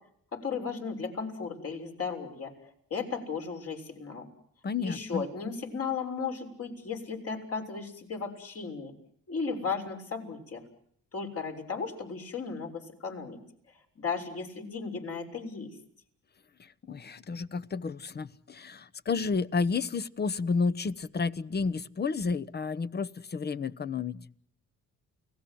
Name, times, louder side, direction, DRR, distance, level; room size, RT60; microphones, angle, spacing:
voice 1, 0.3-2.5 2.9-4.3 4.8-8.9 9.3-10.6 11.1-13.4 14.0-15.7, left 5 dB, 50° left, 6.6 m, -35 dB
voice 2, 4.6-5.2 16.9-24.3, left 4 dB, 35° left, 1.0 m, -31 dB
30.0 x 19.0 x 7.8 m
cardioid pair, 90°, 30 cm